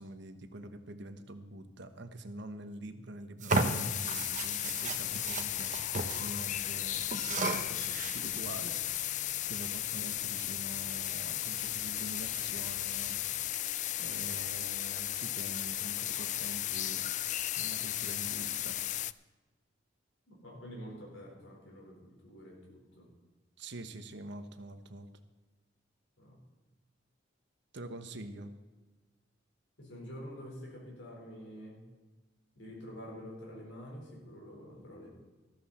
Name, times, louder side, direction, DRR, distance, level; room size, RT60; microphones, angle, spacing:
voice 1, 0.0-5.7 6.2-8.8 9.5-13.2 14.0-17.1 17.6-18.8 23.6-25.1 27.7-28.5, right 1 dB, 65° right, 9 dB, 1.1 m, -45 dB
sound 1, 3.4-6.2 6.5-6.7 7.1-8.4, right 3 dB, 40° right, 1.1 m, -34 dB
sound 2, 3.5-19.1, left 13 dB, 40° left, 0.3 m, -35 dB
voice 2, 20.3-23.1 26.2-26.4 29.8-31.9 32.6-35.1, equal, 75° left, -1 dB, 4.4 m, -47 dB
13.5 x 13.5 x 4.3 m, 1.2 s
head